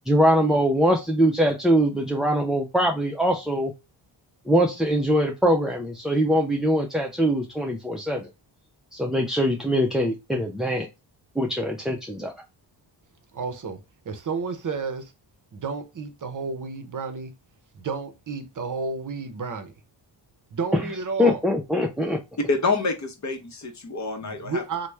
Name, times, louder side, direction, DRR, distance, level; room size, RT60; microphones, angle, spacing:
voice 1, 0.1-3.7 4.5-8.3 8.9-10.9 11.4-12.3 20.7-20.8 21.2-22.2, equal, ahead, 0.3 m, -22 dB
voice 2, 13.3-15.1 15.5-17.3 17.7-19.7 20.5-21.4 24.2-24.9, right 4 dB, 45° right, 0.6 m, -31 dB
voice 3, 22.5-24.6, left 3 dB, 40° left, 0.7 m, -27 dB
3.0 x 2.1 x 3.2 m
cardioid pair, 70°, 45 cm